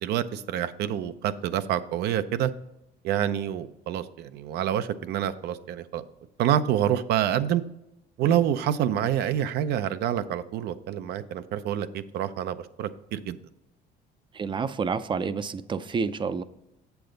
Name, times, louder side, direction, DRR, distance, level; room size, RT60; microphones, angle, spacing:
voice 1, 0.0-2.5 3.0-6.0 6.4-7.6 8.2-13.4, right 10 dB, 75° right, 12 dB, 0.6 m, -27 dB
voice 2, 14.3-16.4, right 5 dB, 30° right, 14 dB, 0.5 m, -29 dB
7.6 x 7.0 x 3.9 m, 0.88 s
cardioid pair, 110°, 17 cm